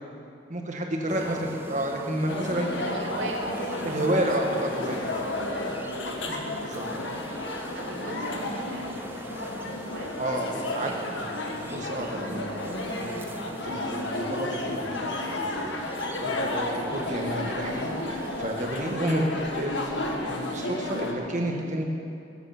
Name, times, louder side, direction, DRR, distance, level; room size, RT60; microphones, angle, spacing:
voice 1, 0.5-1.4 1.7-2.7 3.8-5.3 6.3-7.2 10.2-10.9 11.6-13.3 13.6-21.8, right 1 dB, 40° right, 1 dB, 1.7 m, -31 dB
sound 1, 1.1-19.0, right 1 dB, 10° right, 0.7 m, -42 dB
voice 2, 1.1-1.4 2.8-4.2 5.9-6.4 7.7-11.2 18.7-18.9, right 2 dB, 75° right, 0 dB, 2.2 m, -41 dB
sound 2, 2.3-21.1, left 1 dB, 70° left, 1.5 m, -32 dB
22.0 x 8.1 x 6.1 m, 2.7 s
head